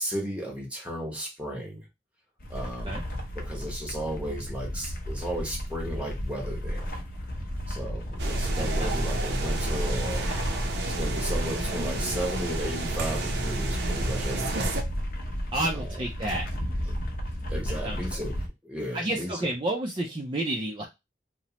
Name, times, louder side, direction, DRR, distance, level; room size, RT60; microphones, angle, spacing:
voice 1, 0.0-1.9 2.5-3.0 3.3-6.9 7.7-10.3 10.9-14.8 15.7-16.0 16.9-17.0 17.5-19.5, equal, 5° right, -1 dB, 0.8 m, -34 dB
sound 1, 2.4-18.5, equal, 50° left, 0.7 m, -34 dB
sound 2, 8.2-14.8, right 1 dB, 75° right, 0.6 m, -29 dB
voice 2, 8.6-8.9 15.5-16.4 17.8-18.0 18.9-20.8, right 1 dB, 25° right, 0 dB, 0.4 m, -30 dB
2.9 x 2.0 x 2.8 m, 0.23 s
head